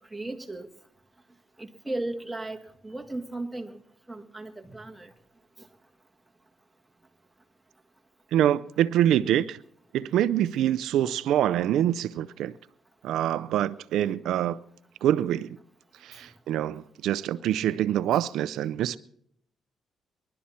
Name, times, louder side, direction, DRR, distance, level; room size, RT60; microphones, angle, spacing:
voice 1, 0.1-0.7 1.6-2.6 2.8-3.8 4.1-5.1, right 2 dB, 5° right, 2.0 m, -35 dB
voice 2, 8.3-9.6 9.9-12.5 13.0-14.6 15.0-15.6 16.0-19.0, right 11 dB, 80° right, 0.5 m, -25 dB
21.0 x 11.5 x 4.3 m
cardioid pair, 90°, 0 cm